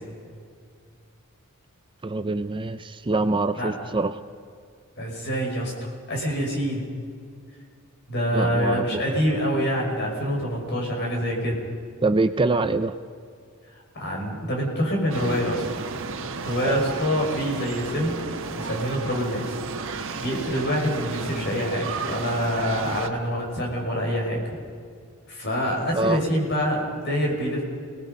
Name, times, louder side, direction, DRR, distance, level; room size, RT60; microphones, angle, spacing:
voice 1, 2.0-4.2 8.3-9.0 12.0-12.9 16.6-16.7 25.9-26.2, right 3 dB, 20° right, 11 dB, 0.5 m, -24 dB
voice 2, 5.0-6.9 8.1-11.6 13.9-15.7 16.4-18.2 18.5-19.6 20.2-24.4 25.3-27.6, equal, 50° left, 0 dB, 5.7 m, -26 dB
sound 1, 15.1-23.1, right 4 dB, 60° right, 1.4 m, -33 dB
29.5 x 19.0 x 5.3 m, 2.2 s
head